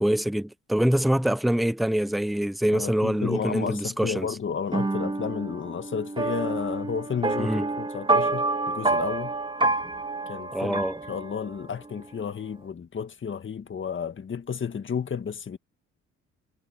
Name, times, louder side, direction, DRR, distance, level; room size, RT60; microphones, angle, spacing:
voice 1, 0.0-4.3 7.4-7.7 10.5-11.0, right 1 dB, ahead, 0.8 m, -25 dB
voice 2, 2.7-9.3 10.3-15.6, left 6 dB, 40° left, 1.9 m, -32 dB
sound 1, 4.7-11.7, right 3 dB, 15° right, 2.2 m, -28 dB
cardioid pair, 90°, 30 cm